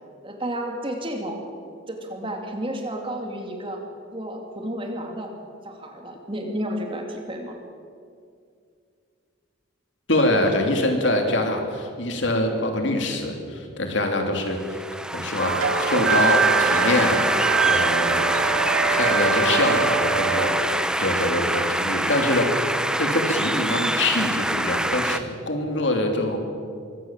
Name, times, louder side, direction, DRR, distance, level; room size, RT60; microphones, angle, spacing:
voice 1, 0.2-1.4 1.9-3.8 4.1-5.3 5.6-7.5, right 1 dB, 25° right, 2 dB, 2.7 m, -31 dB
voice 2, 10.1-14.6 15.1-17.2 17.7-18.1 18.9-20.6 21.0-22.7 23.0-26.4, left 1 dB, 60° left, 4 dB, 3.0 m, -24 dB
sound 1, 14.5-25.2, right 1 dB, 5° right, 0.6 m, -25 dB
sound 2, 15.4-20.5, right 5 dB, 80° right, 2.5 m, -23 dB
23.5 x 17.0 x 7.5 m, 2.3 s
head